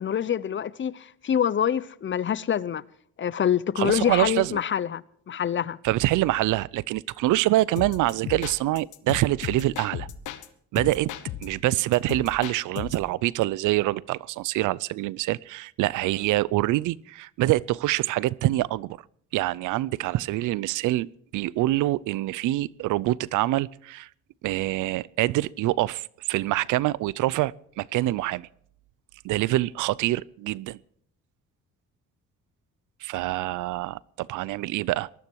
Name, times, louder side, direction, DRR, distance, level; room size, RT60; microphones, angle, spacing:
voice 1, 0.0-2.8 3.2-5.8, left 9 dB, 40° left, 0.7 m, -26 dB
voice 2, 3.8-4.6 5.8-10.1 10.7-11.1 11.4-19.0 19.3-24.1 24.4-28.5 29.2-30.8 33.0-35.1, right 17 dB, 85° right, 0.5 m, -25 dB
sound 1, 7.8-10.5 10.8-13.1, left 10 dB, 85° left, 1.2 m, -36 dB
19.5 x 13.0 x 4.6 m
cardioid pair, 90°, 30 cm